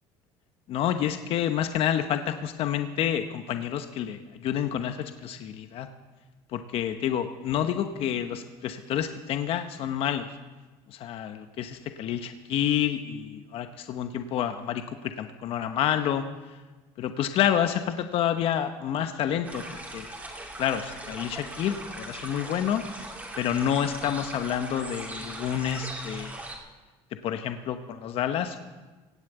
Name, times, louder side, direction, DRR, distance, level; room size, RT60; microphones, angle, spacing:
voice 1, 0.7-5.9 6.5-10.3 10.9-16.2 17.0-19.6 19.9-20.1 20.6-22.8 23.4-26.3 27.2-28.6, left 10 dB, 50° left, 8 dB, 0.9 m, -28 dB
sound 1, 19.4-26.6, right 1 dB, 15° right, 2.8 m, -39 dB
17.5 x 7.7 x 8.0 m, 1.2 s
supercardioid pair, 120°, 12 cm